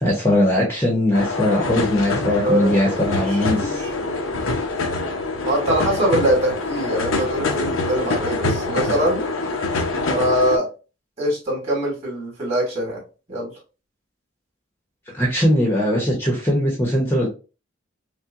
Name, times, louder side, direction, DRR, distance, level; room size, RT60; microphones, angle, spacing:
voice 1, 0.0-3.8 15.1-17.3, left 1 dB, 10° left, -2 dB, 0.8 m, -20 dB
sound 1, 1.1-10.6, left 3 dB, 80° left, 0.7 m, -25 dB
voice 2, 2.4-3.9 5.4-9.2 10.1-10.7 11.2-13.0 13.3-13.5, right 1 dB, 30° right, -5 dB, 2.2 m, -23 dB
5.7 x 2.2 x 2.5 m, 0.32 s
head